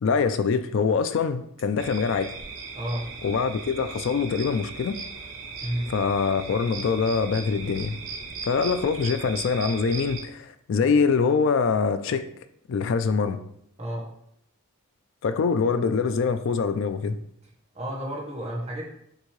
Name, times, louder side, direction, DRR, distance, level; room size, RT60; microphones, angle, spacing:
voice 1, 0.0-2.3 3.2-5.0 5.9-8.0 8.5-12.3 12.7-13.4 15.2-17.2, left 5 dB, 60° left, 10 dB, 0.3 m, -24 dB
sound 1, 1.8-10.2, right 4 dB, 65° right, 0.7 m, -38 dB
voice 2, 2.7-3.1 5.6-5.9 13.8-14.1 17.7-18.9, right 1 dB, 30° right, -4 dB, 1.1 m, -31 dB
6.2 x 2.7 x 3.1 m, 0.73 s
head